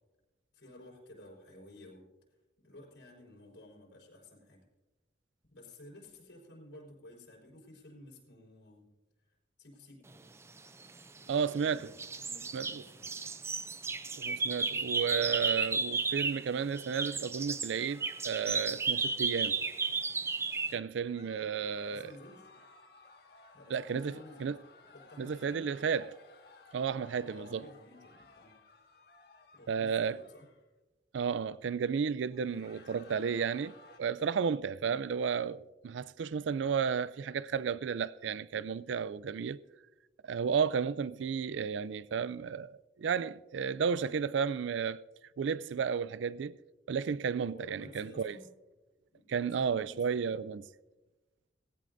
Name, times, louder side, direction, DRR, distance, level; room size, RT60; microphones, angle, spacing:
voice 1, 0.5-2.1 2.6-4.7 5.5-8.9 9.6-10.2 11.1-13.1 21.7-22.5 23.5-24.5 24.9-25.7 27.3-28.6 29.5-30.5 47.4-48.6 49.1-50.0, left 1 dB, 80° left, 4.5 m, -54 dB
sound 1, 10.8-11.7 12.0-16.5 16.7-20.8, right 4 dB, 15° right, 0.4 m, -33 dB
voice 2, 11.3-11.9 12.5-12.8 14.2-19.6 20.7-22.1 23.7-24.6 25.2-26.2 26.7-27.6 29.7-30.2 31.1-33.7 34.0-39.6 40.2-45.0 45.4-46.6 46.9-48.4 49.3-50.6, right 6 dB, 85° right, 0.4 m, -33 dB
sound 2, 17.7-19.3 21.0-30.6 32.3-34.0, left 3 dB, 60° left, 1.7 m, -58 dB
18.5 x 16.0 x 2.6 m
head